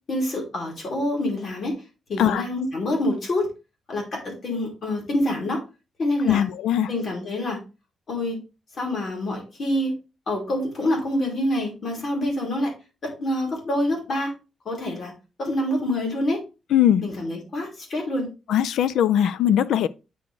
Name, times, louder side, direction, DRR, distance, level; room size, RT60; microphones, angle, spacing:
voice 1, 0.1-1.8 2.1-3.5 3.9-5.6 6.0-6.5 6.9-7.6 8.1-8.4 8.7-9.9 10.3-12.7 13.0-14.3 14.6-15.1 15.4-16.4 17.0-18.3, left 1 dB, 45° left, 3.0 m, -26 dB
voice 2, 6.3-6.9 16.7-17.0 18.5-19.9, left 10 dB, 90° left, 0.4 m, -20 dB
8.9 x 4.1 x 3.3 m
cardioid pair, 145°, 0 cm